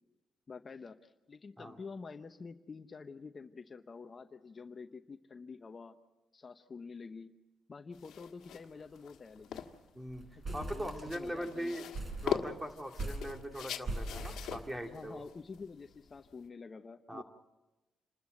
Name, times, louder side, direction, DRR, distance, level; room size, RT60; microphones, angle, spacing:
voice 1, 0.5-6.0 6.3-7.3 7.7-9.7 10.4-11.8 14.9-17.2, left 4 dB, 35° left, 8 dB, 0.9 m, -48 dB
sound 1, 7.9-16.5, left 9 dB, 80° left, 1.6 m, -42 dB
sound 2, 8.4-8.7 8.9-9.0 9.4-9.7 10.1-11.5 11.9-15.2, right 2 dB, 35° right, 4.2 m, -42 dB
voice 2, 9.9-10.2 10.5-11.8 12.2-15.2 17.1-17.2, equal, 10° right, 4 dB, 2.4 m, -41 dB
28.0 x 13.5 x 7.8 m, 1.1 s
cardioid pair, 90°, 0 cm